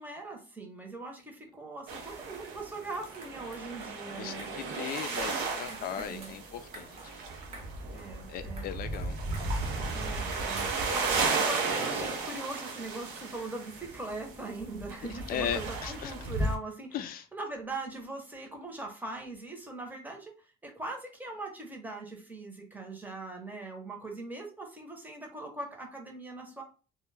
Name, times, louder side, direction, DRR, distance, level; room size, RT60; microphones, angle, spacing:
voice 1, 0.0-4.5 5.7-6.3 7.9-8.7 9.9-17.0 17.3-20.3 20.6-26.6, right 2 dB, 10° right, 0.8 m, -41 dB
sound 1, 1.9-16.6, right 3 dB, 85° right, 0.6 m, -34 dB
sound 2, 2.9-12.4, right 2 dB, 40° right, 0.8 m, -52 dB
voice 2, 4.1-7.2 8.3-9.2 15.0-16.1 16.9-17.2, left 9 dB, 60° left, 0.4 m, -37 dB
2.2 x 2.1 x 3.2 m
cardioid pair, 110°, 17 cm